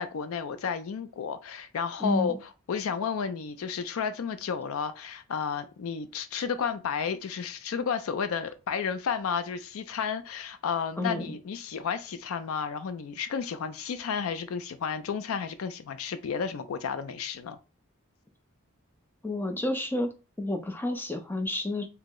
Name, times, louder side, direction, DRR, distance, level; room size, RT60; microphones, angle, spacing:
voice 1, 0.0-2.3 2.7-17.6, left 6 dB, 75° left, 0.4 m, -32 dB
voice 2, 2.0-2.4 11.0-11.3 19.2-20.1 20.4-21.9, left 1 dB, 10° left, 0.3 m, -30 dB
2.9 x 2.0 x 3.6 m
head